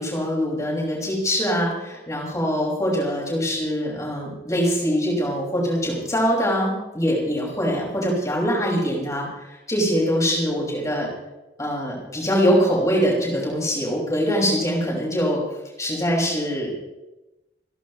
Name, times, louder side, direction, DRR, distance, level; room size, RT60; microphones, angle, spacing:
voice 1, 0.0-11.1 11.6-15.4 15.8-16.8, equal, 20° left, -3 dB, 6.0 m, -23 dB
28.5 x 11.5 x 3.2 m, 1.0 s
head